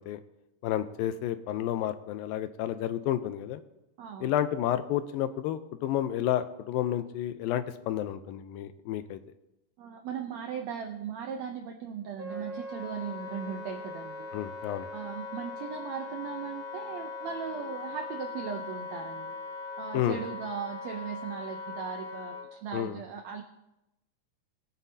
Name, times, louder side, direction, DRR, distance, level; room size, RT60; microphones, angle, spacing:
voice 1, 0.6-3.6 4.2-9.2 14.3-14.9 19.9-20.2 22.7-23.0, left 12 dB, 85° left, 11 dB, 2.4 m, -30 dB
voice 2, 4.0-4.3 9.8-14.3 14.9-19.4 19.8-23.4, right 7 dB, 85° right, 3 dB, 1.5 m, -38 dB
Wind instrument woodwind instrument, 12.2-22.5, left 4 dB, 10° right, 1.0 m, -40 dB
21.5 x 9.1 x 2.8 m, 0.90 s
omnidirectional pair, 4.1 m